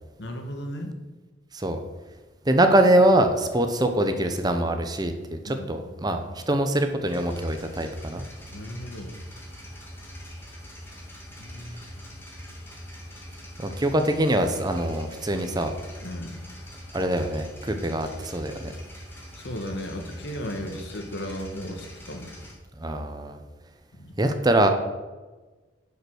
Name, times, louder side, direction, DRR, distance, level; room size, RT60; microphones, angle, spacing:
voice 1, 0.2-0.9 5.4-5.9 8.5-9.1 11.4-11.9 16.0-16.4 19.3-22.3 23.9-24.2, equal, 60° left, 5 dB, 1.4 m, -36 dB
voice 2, 2.5-8.2 13.6-15.7 16.9-18.7 22.8-23.4 24.2-24.7, right 1 dB, 20° right, 6 dB, 0.7 m, -23 dB
sound 1, 7.0-22.5, equal, 10° left, 2.0 m, -43 dB
10.5 x 5.4 x 6.3 m, 1.3 s
head